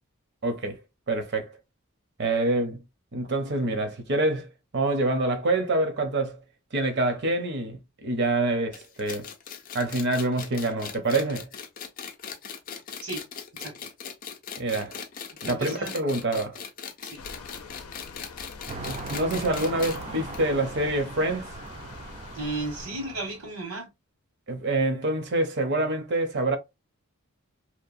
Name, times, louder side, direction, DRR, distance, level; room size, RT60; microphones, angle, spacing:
voice 1, 0.4-0.8 1.1-1.5 2.2-2.8 3.1-6.4 6.7-9.3 9.7-11.5 14.6-15.0 15.5-16.6 18.8-21.5 24.5-26.6, right 2 dB, 50° right, 0.7 m, -26 dB
sound 1, 8.7-20.0 20.3-20.4 20.7-20.8 21.7-21.8, left 7 dB, 40° left, 0.5 m, -39 dB
voice 2, 15.4-15.9 17.0-17.2 22.3-23.9, right 2 dB, 85° right, 1.6 m, -34 dB
sound 2, 17.2-22.9, left 3 dB, 90° left, 0.5 m, -44 dB
sound 3, 18.7-23.5, right 3 dB, 30° right, 0.4 m, -40 dB
2.9 x 2.1 x 2.5 m
head